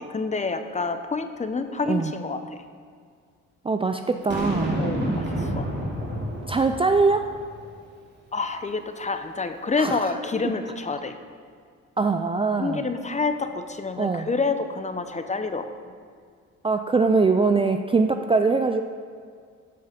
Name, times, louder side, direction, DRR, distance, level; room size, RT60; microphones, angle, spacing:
voice 1, 0.0-2.6 4.8-5.7 8.3-11.2 12.6-15.7, left 4 dB, 25° left, 8 dB, 0.8 m, -28 dB
voice 2, 3.6-4.9 6.5-7.4 9.8-10.2 10.4-10.5 12.0-12.8 14.0-14.3 16.6-18.8, right 4 dB, 20° right, 6 dB, 0.4 m, -22 dB
Boom, 4.3-7.6, right 1 dB, 35° right, 2.9 m, -29 dB
13.0 x 5.6 x 5.2 m, 2.1 s
cardioid pair, 90°, 30 cm